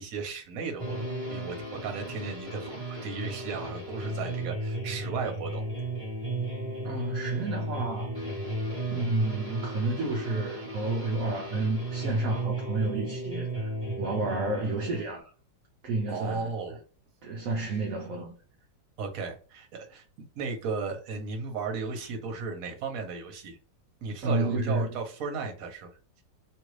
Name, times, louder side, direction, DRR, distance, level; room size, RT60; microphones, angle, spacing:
voice 1, 0.0-5.6 16.1-16.8 19.0-20.0 20.3-23.6 24.0-25.9, right 4 dB, 60° right, 1.1 m, -35 dB
sound 1, 0.8-15.2, right 1 dB, 20° right, 1.1 m, -35 dB
voice 2, 6.8-8.1 8.9-15.3 15.8-16.5 17.2-18.3 24.2-24.9, right 2 dB, 75° right, 0.7 m, -30 dB
3.1 x 2.4 x 3.1 m
omnidirectional pair, 2.0 m